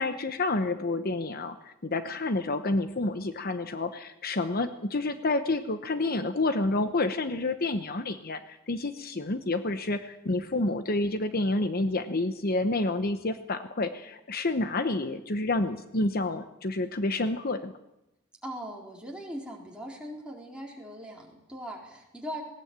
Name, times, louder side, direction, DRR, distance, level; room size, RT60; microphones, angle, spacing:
voice 1, 0.0-17.7, left 2 dB, 45° left, 9 dB, 0.9 m, -29 dB
voice 2, 18.4-22.4, equal, 5° right, -1 dB, 4.1 m, -40 dB
19.5 x 18.0 x 8.9 m, 0.91 s
head